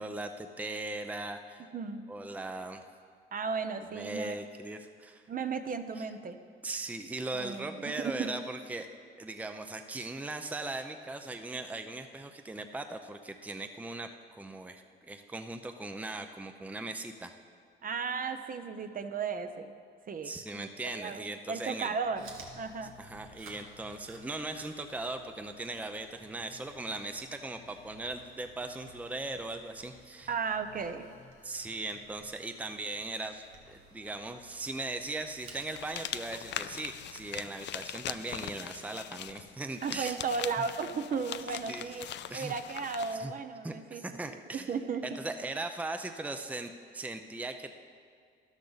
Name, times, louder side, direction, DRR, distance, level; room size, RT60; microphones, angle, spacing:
voice 1, 0.0-1.7 2.1-2.9 3.9-5.3 6.0-6.1 6.6-8.9 9.2-14.1 14.4-17.3 20.2-21.9 23.0-30.3 31.4-40.2 41.7-42.0 42.3-42.5 43.1-43.3 43.6-44.7 45.0-47.7, right 2 dB, 5° right, 7 dB, 0.6 m, -39 dB
voice 2, 3.3-4.4 5.3-6.4 7.3-8.5 17.8-19.7 20.1-20.7 21.0-22.3 22.6-22.9 30.3-31.0 39.8-42.1 42.3-44.0 44.5-45.0, right 5 dB, 45° right, 8 dB, 0.8 m, -35 dB
Chewing mastication, 21.8-37.7, right 4 dB, 90° right, 1.5 m, -58 dB
sound 1, 22.0-37.4, left 6 dB, 90° left, 3.3 m, -60 dB
sound 2, 35.7-43.2, left 11 dB, 65° left, 0.5 m, -41 dB
13.0 x 12.0 x 4.0 m, 2.2 s
cardioid pair, 90°, 20 cm